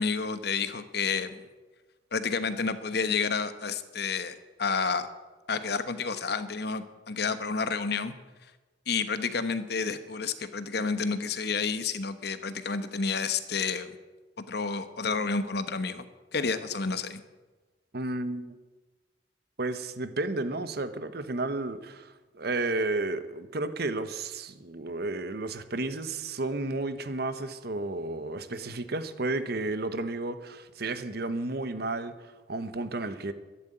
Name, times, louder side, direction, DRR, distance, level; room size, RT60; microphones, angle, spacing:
voice 1, 0.0-1.4 2.1-5.1 5.5-8.1 8.9-13.9 14.5-16.0 16.3-17.2, left 5 dB, 65° left, 11 dB, 1.1 m, -30 dB
voice 2, 17.9-18.6 19.6-33.3, right 2 dB, 60° right, 11 dB, 1.1 m, -32 dB
12.5 x 10.5 x 9.1 m, 1.2 s
head